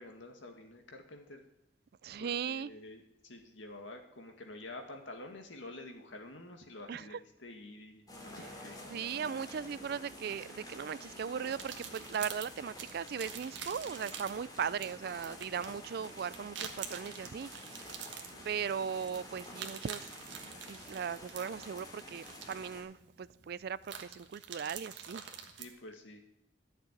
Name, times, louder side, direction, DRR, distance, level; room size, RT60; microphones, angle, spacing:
voice 1, 0.0-1.5 2.2-8.9 18.3-18.7 25.6-26.2, left 2 dB, 85° left, 4 dB, 2.0 m, -49 dB
voice 2, 2.0-2.7 6.9-7.2 8.9-17.5 18.4-20.0 20.7-25.2, right 7 dB, 55° right, 19 dB, 0.4 m, -38 dB
sound 1, 8.1-22.8, left 1 dB, 20° left, 2.6 m, -49 dB
sound 2, 11.5-25.7, right 7 dB, 75° right, 1.4 m, -47 dB
12.0 x 6.8 x 9.4 m, 0.82 s
head